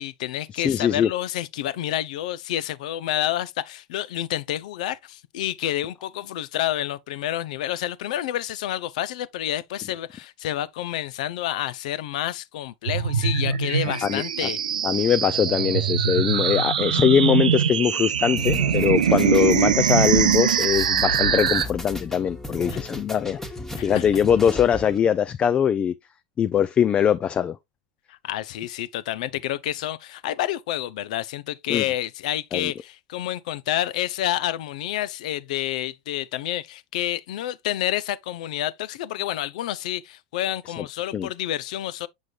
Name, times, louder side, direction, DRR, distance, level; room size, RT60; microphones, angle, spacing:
voice 1, 0.0-14.6 22.7-22.8 23.8-24.0 28.1-42.1, left 13 dB, 70° left, 0.6 m, -29 dB
voice 2, 0.5-1.1 14.0-14.5 14.8-23.4 23.8-25.9 26.4-27.6 31.7-31.8 32.5-32.7 40.8-40.9 41.1-41.3, left 8 dB, 30° left, 0.4 m, -22 dB
sound 1, 12.9-21.6, right 7 dB, 90° right, 0.8 m, -22 dB
sound 2, 18.4-25.0, left 1 dB, 10° left, 1.4 m, -35 dB
7.3 x 6.2 x 2.4 m
hypercardioid pair, 105°, 4 cm